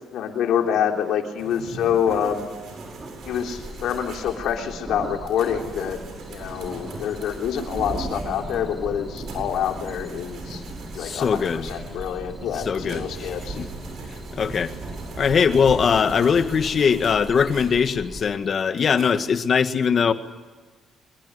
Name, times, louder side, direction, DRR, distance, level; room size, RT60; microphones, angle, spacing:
voice 1, 0.1-2.5 3.3-6.0 6.3-10.6 10.9-13.6, left 9 dB, 80° left, 3 dB, 3.6 m, -26 dB
sound 1, 1.4-19.2, right 3 dB, 70° right, 7.8 m, -44 dB
sound 2, 2.0-16.5, right 3 dB, 35° right, 4.2 m, -38 dB
sound 3, 3.2-18.3, right 1 dB, 15° right, 5.4 m, -41 dB
voice 2, 11.0-11.7 12.5-13.7 14.3-14.8 15.2-20.1, left 6 dB, 50° left, 10 dB, 1.7 m, -21 dB
24.0 x 21.5 x 9.9 m, 1.3 s
cardioid pair, 90°, 0 cm